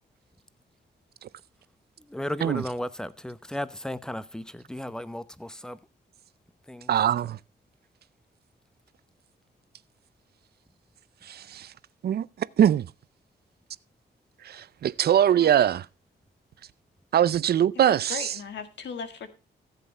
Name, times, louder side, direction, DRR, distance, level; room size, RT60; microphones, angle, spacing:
voice 1, 2.0-5.8 6.7-6.9, left 1 dB, 5° left, 0.8 m, -35 dB
voice 2, 6.9-7.4 11.2-11.7 12.0-12.9 14.4-15.8 17.1-18.3, right 10 dB, 60° right, 0.5 m, -22 dB
voice 3, 17.8-19.3, left 6 dB, 70° left, 1.8 m, -37 dB
14.5 x 7.8 x 4.4 m
cardioid pair, 100°, 19 cm